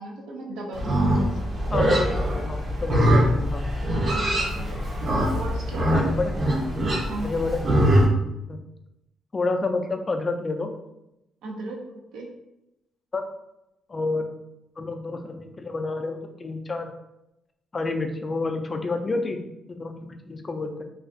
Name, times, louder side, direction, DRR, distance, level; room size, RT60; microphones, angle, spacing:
voice 1, 0.0-1.3 4.1-4.8 5.3-6.1 7.1-7.3 11.4-11.8 12.1-12.3, right 1 dB, 85° right, 0 dB, 0.5 m, -36 dB
Livestock farm animals working animals, 0.7-8.1, equal, 45° right, 0.6 m, -23 dB
voice 2, 1.7-3.7 5.8-6.4 7.2-7.6 8.5-8.6 9.3-10.7 13.1-13.2 13.9-14.3 14.8-16.9 17.7-19.4 19.7-20.8, left 3 dB, 30° left, 5 dB, 0.3 m, -29 dB
2.4 x 2.2 x 2.5 m, 0.89 s
cardioid pair, 90°, 0 cm